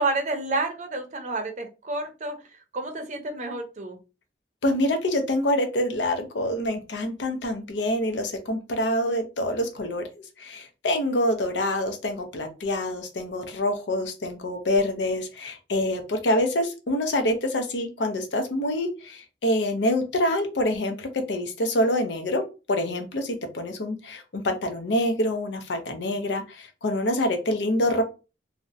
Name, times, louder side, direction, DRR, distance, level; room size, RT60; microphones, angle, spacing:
voice 1, 0.0-2.3 2.7-4.0, right 2 dB, 45° right, 5 dB, 0.5 m, -29 dB
voice 2, 4.6-10.1 10.4-28.0, left 1 dB, 85° left, 6 dB, 0.6 m, -26 dB
2.7 x 2.1 x 2.4 m, 0.30 s
head